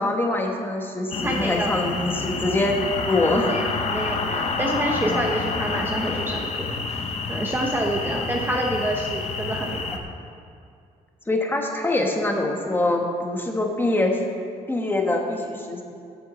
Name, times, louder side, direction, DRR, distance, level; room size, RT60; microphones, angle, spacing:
voice 1, 0.0-3.5 5.0-5.3 8.5-8.6 11.3-14.2 14.7-15.8, left 2 dB, 15° left, 2 dB, 1.3 m, -24 dB
sound 1, 1.1-10.0, left 4 dB, 45° left, 1.0 m, -28 dB
voice 2, 1.2-1.7 3.4-6.5 7.3-9.8, right 1 dB, 15° right, 0 dB, 0.9 m, -27 dB
9.0 x 8.1 x 7.7 m, 2.4 s
cardioid pair, 140°, 15 cm